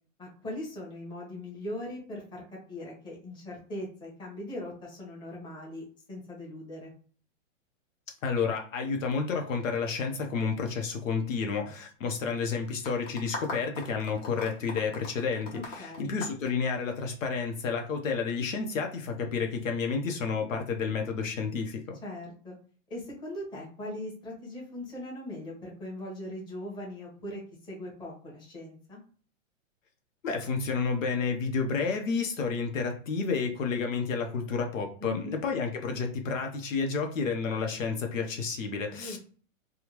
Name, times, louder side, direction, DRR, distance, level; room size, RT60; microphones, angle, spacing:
voice 1, 0.2-6.9 15.5-16.1 22.0-22.5 22.9-29.0 35.0-35.4 38.9-39.2, left 1 dB, 10° left, -4 dB, 1.2 m, -40 dB
voice 2, 8.2-22.0 30.2-39.2, left 5 dB, 75° left, 4 dB, 1.0 m, -30 dB
sound 1, 12.8-17.2, left 2 dB, 30° left, 1.0 m, -40 dB
3.5 x 2.4 x 3.0 m, 0.42 s
hypercardioid pair, 155°, 39 cm